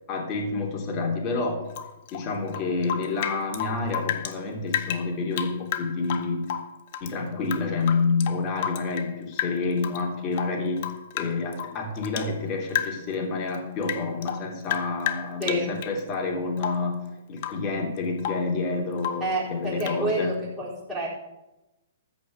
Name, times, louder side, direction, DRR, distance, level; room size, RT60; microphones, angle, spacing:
voice 1, 0.1-1.6 2.1-6.5 7.0-10.8 11.1-17.0 17.3-20.3, left 3 dB, 30° left, 0 dB, 3.1 m, -28 dB
Rain / Drip, 1.7-4.4 4.7-7.1 7.4-9.1 9.4-10.0 10.3-12.3 12.7-13.2 13.5-16.0 16.6-16.9 17.4-17.7 18.0-18.5 19.0-19.3 19.8-20.0, left 10 dB, 45° left, 1.0 m, -32 dB
voice 2, 15.4-15.7 19.2-21.1, right 1 dB, 5° right, -13 dB, 5.1 m, -28 dB
14.0 x 5.3 x 8.4 m, 0.94 s
hypercardioid pair, 150°, 0 cm